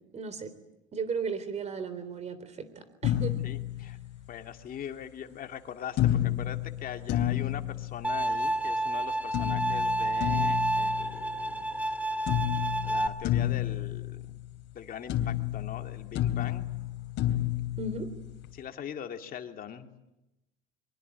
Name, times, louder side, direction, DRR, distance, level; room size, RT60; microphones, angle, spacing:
voice 1, 0.1-0.5 0.9-3.3 17.8-18.1, right 4 dB, 35° right, 13 dB, 3.6 m, -35 dB
sound 1, 3.0-4.6 6.0-8.6 9.3-11.9 12.3-14.8 15.1-18.6, left 13 dB, 65° left, 3.2 m, -31 dB
voice 2, 3.4-4.0 4.3-11.8 12.8-14.4 14.7-16.7 18.5-19.9, left 9 dB, 45° left, 5 dB, 2.4 m, -41 dB
Bowed string instrument, 8.0-13.1, right 1 dB, 5° right, 2.1 m, -29 dB
24.0 x 23.5 x 9.5 m, 0.92 s
cardioid pair, 140°, 21 cm